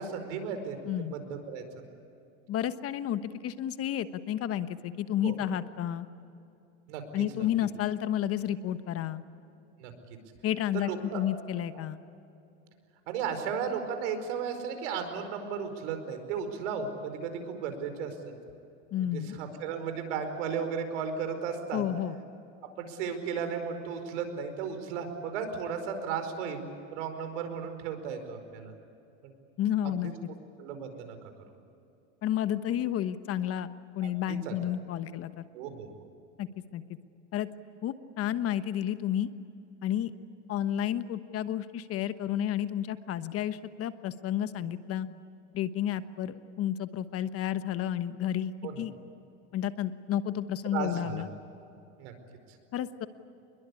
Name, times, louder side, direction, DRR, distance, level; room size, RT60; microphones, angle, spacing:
voice 1, 0.0-1.6 5.2-5.3 6.9-7.2 9.8-9.9 10.7-11.3 11.8-11.9 13.1-18.3 19.1-21.8 22.8-26.7 26.9-28.7 30.6-31.2 34.0-34.5 35.5-35.9 48.6-48.8 50.7-51.2 52.0-52.1, right 6 dB, 75° right, 7 dB, 5.1 m, -35 dB
voice 2, 0.8-1.2 2.5-6.1 7.1-9.2 10.4-12.0 18.9-19.4 21.7-22.2 29.6-30.1 32.2-33.7 33.9-35.4 36.4-36.8 37.3-37.5 37.8-39.3 39.8-40.1 40.5-45.1 45.5-48.9 49.5-51.3 52.7-53.1, left 11 dB, 40° left, 12 dB, 1.2 m, -31 dB
27.5 x 22.0 x 8.5 m, 2.7 s
supercardioid pair, 120°, 36 cm